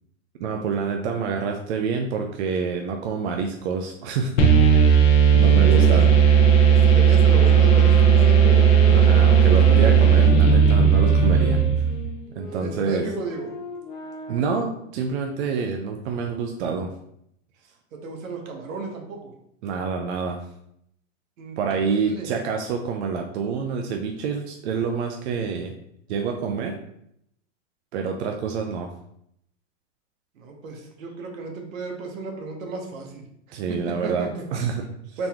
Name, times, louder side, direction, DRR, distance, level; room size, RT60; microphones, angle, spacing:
voice 1, 0.4-4.6 5.3-6.1 7.8-8.0 8.8-11.6 12.3-13.1 14.3-16.9 19.6-20.4 21.6-25.7 26.1-26.8 27.9-28.9 33.5-35.2, right 5 dB, 60° right, 3 dB, 0.5 m, -27 dB
sound 1, 4.4-12.1, right 7 dB, 75° left, 1.1 m, -15 dB
voice 2, 5.4-6.0 6.7-8.6 12.5-13.5 18.0-19.3 21.4-22.3 30.4-33.2 33.7-34.4 35.2-35.3, right 3 dB, 80° right, 2 dB, 1.2 m, -34 dB
sound 2, 7.2-14.7, left 3 dB, 25° left, 0.7 m, -36 dB
4.0 x 2.9 x 3.5 m, 0.74 s
supercardioid pair, 155°, 39 cm